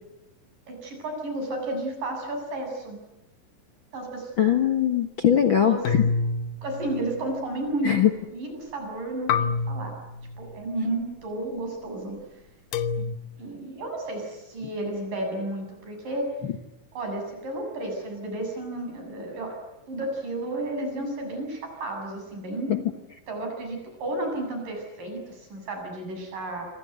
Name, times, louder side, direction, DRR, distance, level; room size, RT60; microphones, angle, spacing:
voice 1, 0.7-3.0 3.9-4.3 5.6-5.9 6.6-9.9 10.4-12.2 13.0-13.1 13.4-16.3 16.9-19.6 19.9-23.0 23.3-26.7, right 1 dB, 75° right, 4 dB, 9.3 m, -32 dB
voice 2, 4.4-6.0 7.8-8.1 22.7-22.8, left 9 dB, 50° left, 7 dB, 1.6 m, -21 dB
sound 1, 5.9-7.6 9.3-10.7 12.7-13.2, left 5 dB, 75° left, 2.6 m, -28 dB
27.5 x 26.0 x 8.1 m, 0.90 s
omnidirectional pair, 3.9 m